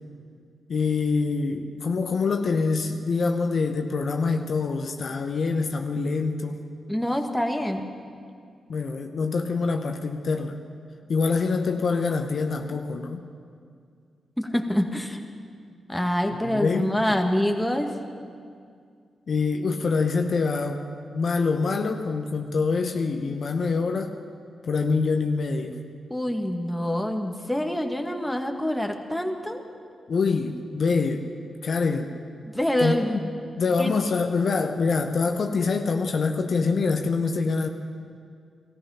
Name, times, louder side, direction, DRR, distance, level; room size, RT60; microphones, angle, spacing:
voice 1, 0.7-6.6 8.7-10.6 11.1-13.2 16.4-17.2 19.3-20.9 21.1-24.2 24.6-25.7 30.1-31.3 31.6-32.1 32.8-33.0 33.6-37.7, left 4 dB, 65° left, 5 dB, 0.9 m, -25 dB
voice 2, 6.9-7.9 14.4-15.2 15.9-17.9 26.1-29.6 32.5-33.2 33.8-33.9, left 1 dB, 5° left, 4 dB, 1.8 m, -26 dB
18.0 x 14.0 x 5.8 m, 2.2 s
supercardioid pair, 40°, 0 cm